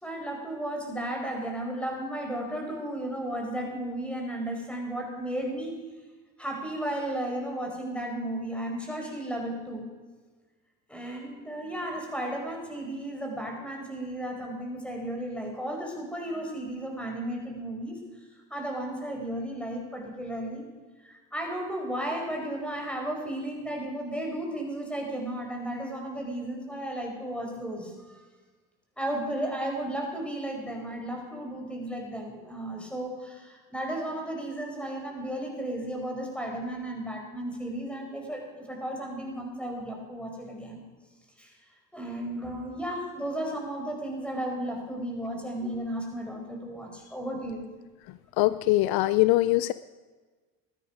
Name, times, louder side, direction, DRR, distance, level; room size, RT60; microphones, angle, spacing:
voice 1, 0.0-5.7 6.4-9.8 10.9-18.0 18.5-20.7 21.0-28.2 29.0-40.8 41.4-41.5 41.9-47.7, right 1 dB, 5° left, 1 dB, 4.9 m, -34 dB
voice 2, 48.1-49.7, left 17 dB, 65° left, 16 dB, 0.5 m, -23 dB
16.0 x 12.0 x 5.2 m, 1.4 s
supercardioid pair, 80°, 40 cm